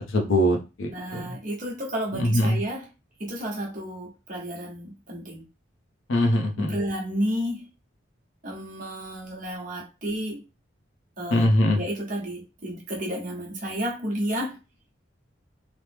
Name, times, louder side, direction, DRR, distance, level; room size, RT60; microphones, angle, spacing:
voice 1, 0.0-1.3 2.1-2.6 6.1-6.7 11.3-11.8, left 1 dB, 85° left, 0.7 m, -22 dB
voice 2, 0.9-2.9 3.2-5.4 6.6-7.7 8.4-10.4 11.2-11.5 11.7-14.6, equal, 40° right, 0.8 m, -31 dB
3.0 x 2.0 x 3.3 m
head